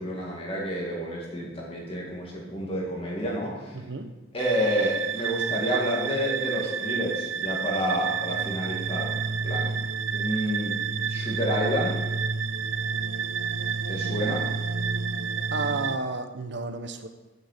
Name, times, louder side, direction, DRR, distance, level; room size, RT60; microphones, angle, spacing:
voice 1, 0.0-3.8 4.3-9.8 10.1-12.0 13.9-14.4, equal, 30° left, -3 dB, 2.3 m, -29 dB
voice 2, 3.7-4.1 15.5-17.1, right 3 dB, 60° right, 8 dB, 0.9 m, -32 dB
sound 1, 4.4-16.0, right 6 dB, 80° right, 0.5 m, -29 dB
9.6 x 8.5 x 5.1 m, 1.1 s
head